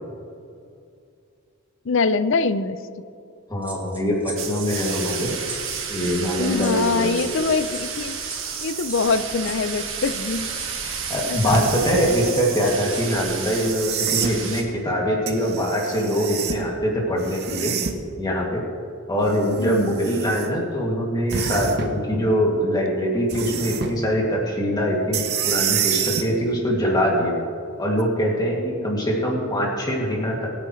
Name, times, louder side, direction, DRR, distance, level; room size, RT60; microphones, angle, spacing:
voice 1, 1.8-2.8 6.4-8.2 8.6-10.5 11.3-12.2 19.6-19.8, left 4 dB, 60° left, 14 dB, 0.5 m, -24 dB
voice 2, 3.5-5.3 5.9-7.1 11.1-17.7 18.2-18.6 19.1-27.4 27.8-30.5, equal, 20° left, -3 dB, 2.3 m, -23 dB
sound 1, 3.6-14.2 14.5-14.7, right 2 dB, 5° right, 1.3 m, -40 dB
sound 2, 4.4-14.6, right 6 dB, 65° right, 1.8 m, -31 dB
sound 3, 11.5-12.1 13.5-14.4 15.3-16.7 17.2-18.1 19.3-20.5 21.3-22.0 23.3-24.0 25.1-26.3 28.0-28.1, right 7 dB, 50° right, 0.8 m, -27 dB
22.0 x 9.3 x 3.2 m, 2.5 s
head